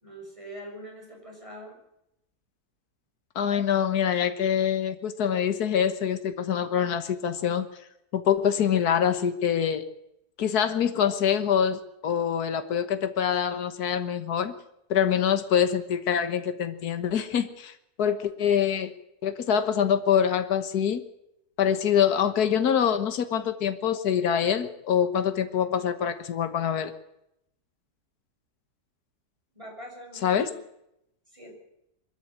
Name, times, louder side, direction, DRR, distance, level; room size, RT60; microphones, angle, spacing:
voice 1, 0.0-1.8 29.5-30.6 31.3-31.6, equal, 20° right, 0 dB, 6.5 m, -43 dB
voice 2, 3.4-7.7 8.1-9.8 10.4-14.5 14.9-18.9 19.2-21.0 21.6-26.9 30.2-30.5, left 8 dB, 80° left, 10 dB, 1.8 m, -25 dB
23.5 x 13.5 x 8.8 m, 0.81 s
omnidirectional pair, 1.6 m